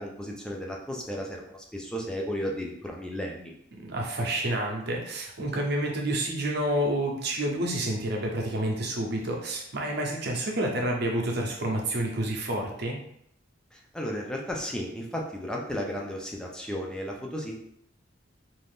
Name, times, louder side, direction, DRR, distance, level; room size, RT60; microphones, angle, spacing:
voice 1, 0.0-3.5 13.7-17.6, equal, 5° left, -1 dB, 0.4 m, -34 dB
voice 2, 3.8-13.0, right 1 dB, 55° right, 0 dB, 0.6 m, -29 dB
2.6 x 2.4 x 3.4 m, 0.73 s
head